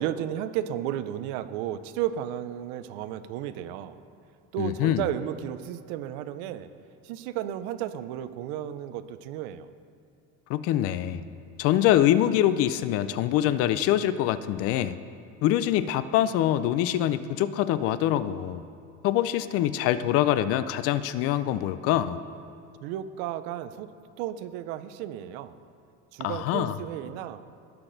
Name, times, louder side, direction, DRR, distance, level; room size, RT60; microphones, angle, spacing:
voice 1, 0.0-4.0 4.5-6.7 7.0-9.7 22.8-23.9 24.2-25.6 26.1-27.4, right 11 dB, 80° right, 12 dB, 0.6 m, -33 dB
voice 2, 4.6-5.0 10.5-11.2 11.6-15.0 15.4-18.6 19.0-22.2 26.2-26.7, left 12 dB, 50° left, 14 dB, 0.4 m, -24 dB
17.5 x 5.9 x 4.0 m, 2.5 s
cardioid pair, 150°, 31 cm